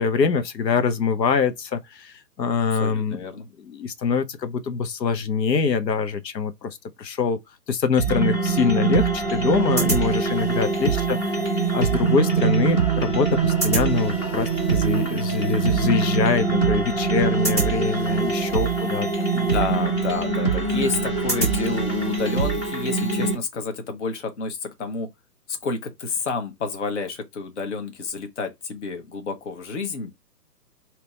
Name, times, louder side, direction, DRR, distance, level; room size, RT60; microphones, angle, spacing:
voice 1, 0.0-3.2 3.7-7.4 7.7-11.2 11.7-19.3, left 5 dB, 85° left, 0.9 m, -24 dB
voice 2, 2.7-3.5 9.8-10.1 10.8-11.1 12.2-12.5 17.5-17.7 19.3-25.1 25.5-30.1, left 4 dB, 45° left, 1.1 m, -30 dB
sound 1, 8.0-23.4, right 4 dB, 15° left, 1.1 m, -23 dB
3.3 x 3.0 x 4.0 m
hypercardioid pair, 160°, 49 cm